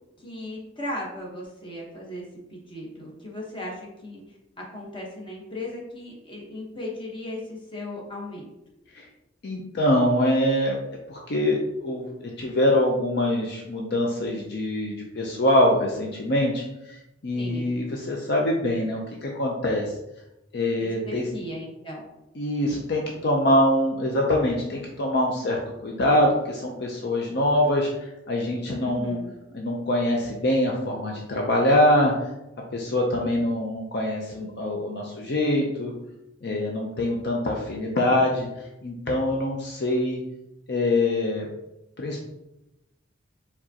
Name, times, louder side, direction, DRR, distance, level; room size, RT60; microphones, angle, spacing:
voice 1, 0.2-2.2 2.5-8.5 17.3-17.7 20.8-22.0 28.8-29.3, left 1 dB, 25° left, -3 dB, 1.1 m, -37 dB
voice 2, 9.4-10.8 11.1-19.9 20.5-21.3 22.4-27.9 28.3-29.2 29.5-32.1 32.7-35.9 36.4-38.5 38.8-40.2 40.7-41.5 42.0-42.2, left 1 dB, 60° left, -1 dB, 0.6 m, -24 dB
4.8 x 3.5 x 2.9 m, 0.91 s
head